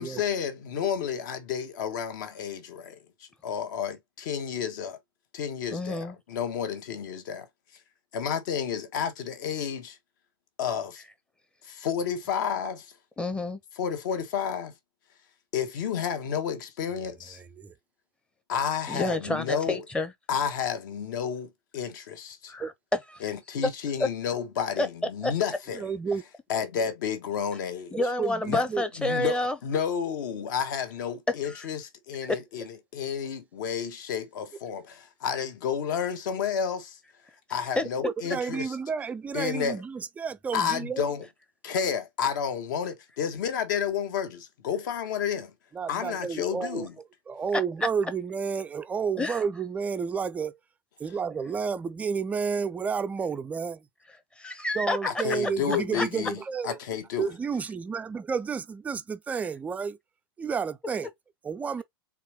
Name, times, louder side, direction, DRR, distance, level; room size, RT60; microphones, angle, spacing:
voice 1, 0.0-5.0 5.3-7.5 8.1-10.0 10.6-11.0 11.7-12.9 13.8-14.7 15.5-17.4 18.5-19.8 20.3-22.5 23.2-25.8 26.5-27.9 28.5-28.6 29.0-37.0 37.5-38.8 39.3-39.8 40.5-41.2 41.6-45.5 45.9-46.9 55.0-57.3, left 7 dB, 50° left, 1.1 m, -31 dB
voice 2, 5.7-6.2 13.2-13.6 18.9-20.1 22.5-22.7 23.1-23.2 23.6-23.7 24.0-24.1 24.8-24.9 25.2-25.3 27.9-29.6 31.5-31.6 32.3-32.4 37.8-37.9 47.5-47.6 49.2-49.4 54.4-55.2 55.9-56.0, left 2 dB, 10° left, 0.8 m, -28 dB
voice 3, 25.8-26.2 27.9-28.8 38.0-41.0 45.7-46.9 47.3-50.6 51.0-53.8 54.7-56.8 57.2-60.0 60.4-61.1 61.4-61.8, right 6 dB, 10° right, 0.4 m, -31 dB
4.3 x 3.5 x 2.9 m
figure-of-eight pair, 95°, 13 cm